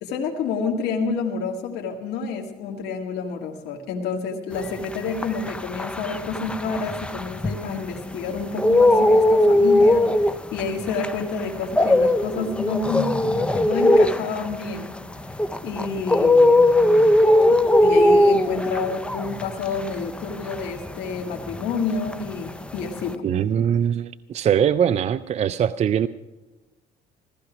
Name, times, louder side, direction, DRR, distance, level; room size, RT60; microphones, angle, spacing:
voice 1, 0.0-14.9 15.6-16.6 17.5-23.3, left 5 dB, 80° left, 1 dB, 1.8 m, -29 dB
sound 1, 4.8-8.0 8.4-21.8 22.1-23.1, left 1 dB, 5° left, 0.6 m, -19 dB
voice 2, 23.2-26.1, right 9 dB, 40° right, 12 dB, 0.4 m, -22 dB
15.5 x 15.0 x 5.0 m, 1.1 s
cardioid pair, 110°, 17 cm